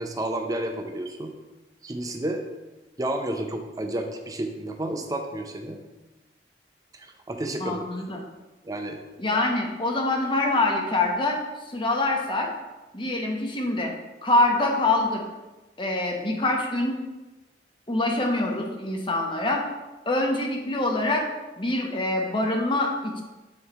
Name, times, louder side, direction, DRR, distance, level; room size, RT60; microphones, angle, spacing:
voice 1, 0.0-1.3 1.8-2.4 3.0-5.8 6.9-7.8 8.6-9.0, right 1 dB, 20° right, 4 dB, 0.5 m, -31 dB
voice 2, 7.6-8.3 9.2-11.4 11.7-12.5 12.9-13.9 14.2-15.2 15.8-17.0 17.9-19.6 20.1-21.2 21.6-23.2, left 2 dB, 30° left, 1 dB, 0.9 m, -25 dB
7.8 x 3.2 x 4.1 m, 1.1 s
head